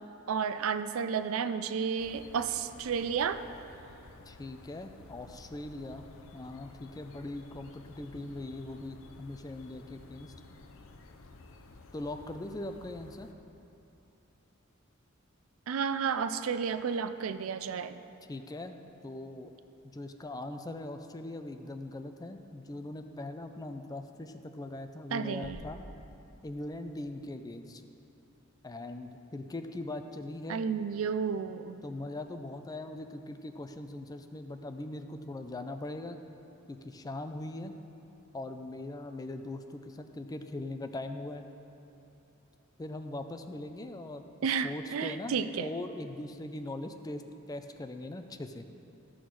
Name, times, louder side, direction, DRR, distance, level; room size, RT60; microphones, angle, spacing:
voice 1, 0.3-3.4 15.7-18.0 25.1-25.6 30.5-31.8 44.4-45.7, right 6 dB, 75° right, 11 dB, 0.4 m, -32 dB
sound 1, 2.0-13.3, left 3 dB, 70° left, 0.6 m, -53 dB
voice 2, 4.3-6.1 6.3-10.3 11.9-13.3 18.3-19.5 19.9-25.8 26.4-27.8 28.6-30.6 31.8-36.2 36.7-37.7 38.3-41.4 42.8-48.6, left 2 dB, 20° left, 7 dB, 0.4 m, -41 dB
sound 2, 25.4-27.2, equal, ahead, 1.1 m, -50 dB
13.0 x 6.3 x 4.7 m, 2.9 s
head